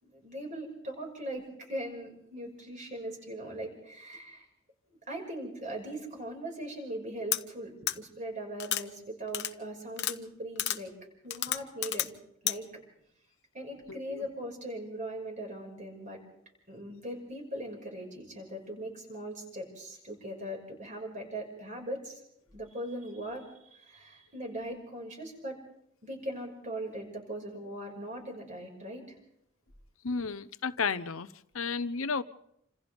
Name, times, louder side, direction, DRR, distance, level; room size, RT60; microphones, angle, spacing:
voice 1, 0.0-4.4 5.1-10.9 11.2-12.1 12.4-12.7 13.5-16.2 16.7-22.2 22.5-23.4 23.7-25.6 26.0-29.2, right 1 dB, 40° right, 5.8 m, -40 dB
sound 1, 7.3-7.4 7.9-8.0 8.6-8.8 9.3-9.5 10.0-10.1 10.6-10.8 11.3-12.1 12.5-12.6, left 13 dB, 55° left, 0.9 m, -30 dB
voice 2, 13.9-14.2 30.0-31.3 31.5-32.2, left 5 dB, 90° left, 0.9 m, -32 dB
27.5 x 27.0 x 3.6 m
head